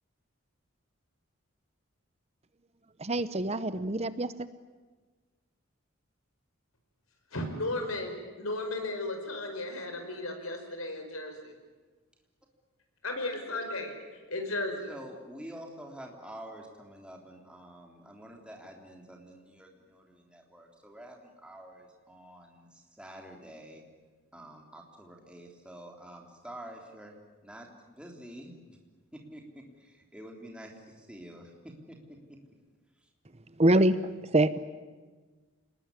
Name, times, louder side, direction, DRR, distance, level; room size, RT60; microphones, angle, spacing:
voice 1, 3.0-4.3 33.6-34.0 34.2-34.6, right 1 dB, 30° right, 14 dB, 0.8 m, -25 dB
voice 2, 7.3-11.5 13.0-13.9 14.3-14.9, left 2 dB, 85° left, 5 dB, 5.2 m, -35 dB
voice 3, 14.9-23.8 24.3-27.2 27.4-28.8 29.1-32.0, right 1 dB, 5° right, 1 dB, 3.4 m, -48 dB
28.5 x 20.0 x 9.8 m, 1.4 s
head